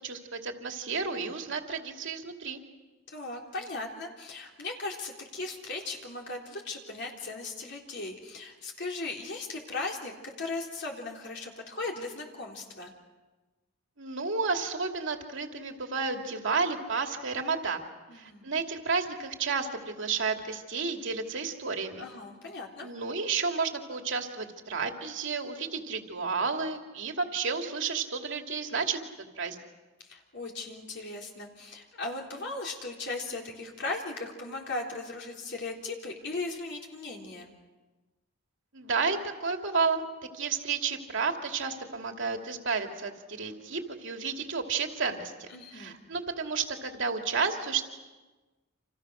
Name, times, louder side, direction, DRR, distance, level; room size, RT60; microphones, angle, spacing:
voice 1, 0.0-2.6 14.0-17.8 18.1-22.1 22.8-29.0 29.4-29.6 38.7-40.1 40.3-45.5 45.7-47.9, right 5 dB, 65° right, 4 dB, 2.7 m, -31 dB
voice 2, 3.1-12.9 18.1-18.5 22.0-22.9 30.0-37.5 45.5-46.0, left 3 dB, 60° left, -1 dB, 3.7 m, -37 dB
29.5 x 28.0 x 6.5 m, 1.2 s
head